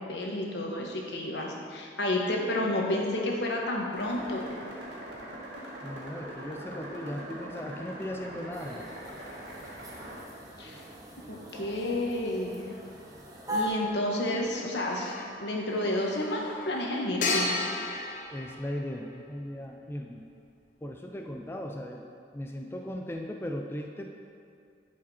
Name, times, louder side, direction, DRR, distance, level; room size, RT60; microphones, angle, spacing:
voice 1, 0.1-4.6 10.6-10.8 11.3-12.6 13.5-15.1 15.4-17.5, left 1 dB, 80° left, -1 dB, 1.3 m, -30 dB
sound 1, 3.9-10.2, right 1 dB, 90° right, 2.2 m, -42 dB
voice 2, 5.8-8.9 18.3-20.2 20.8-22.0 22.3-24.1, equal, 15° left, 2 dB, 0.4 m, -37 dB
sound 2, 8.5-13.7, left 1 dB, 20° right, 1.0 m, -40 dB
sound 3, 11.9-12.0 14.5-19.4, left 3 dB, 45° left, 0.7 m, -35 dB
11.5 x 5.0 x 4.2 m, 2.3 s
head